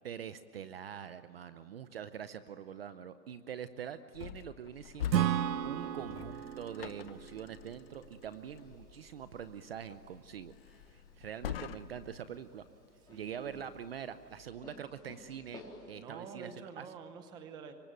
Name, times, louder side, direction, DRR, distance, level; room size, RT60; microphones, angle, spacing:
voice 1, 0.0-5.3 5.6-12.7 13.1-15.6 15.9-16.9, right 8 dB, 35° right, 12 dB, 0.7 m, -44 dB
sound 1, 4.1-12.2, left 10 dB, 35° left, 0.9 m, -46 dB
sound 2, 4.7-15.9, left 3 dB, 10° left, 3.9 m, -59 dB
Acoustic guitar / Strum, 5.1-8.7, right 10 dB, 90° right, 0.9 m, -34 dB
voice 2, 13.1-13.6 16.0-17.7, right 6 dB, 10° right, 8 dB, 0.8 m, -47 dB
26.0 x 24.0 x 9.1 m, 2.5 s
hypercardioid pair, 165°, 49 cm